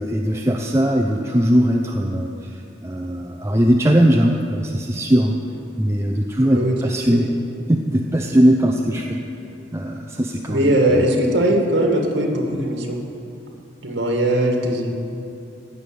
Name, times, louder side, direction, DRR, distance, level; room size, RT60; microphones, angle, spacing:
voice 1, 0.0-5.4 5.8-7.3 7.7-9.2 9.7-11.1, equal, 15° right, 1 dB, 0.6 m, -19 dB
voice 2, 10.5-13.0 13.8-14.9, right 1 dB, 70° right, 1 dB, 2.2 m, -19 dB
16.5 x 6.9 x 9.2 m, 2.6 s
head